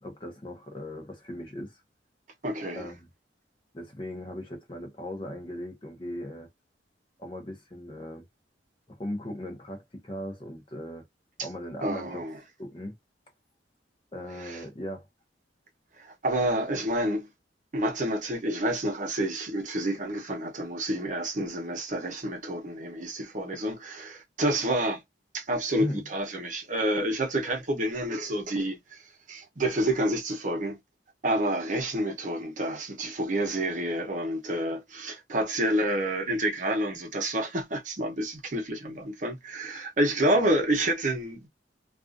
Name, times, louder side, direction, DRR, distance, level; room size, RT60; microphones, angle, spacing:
voice 1, 0.0-1.8 2.7-3.1 3.7-6.5 7.2-8.3 8.9-11.0 11.4-12.3 12.6-12.9 14.1-15.1 25.8-26.0, left 1 dB, 30° left, 0.7 m, -38 dB
voice 2, 2.4-2.9 11.8-12.4 14.4-14.6 16.0-17.3 17.7-25.0 25.3-29.0 29.3-30.8 31.2-41.5, right 1 dB, 45° right, 0.8 m, -29 dB
2.4 x 2.4 x 2.5 m
head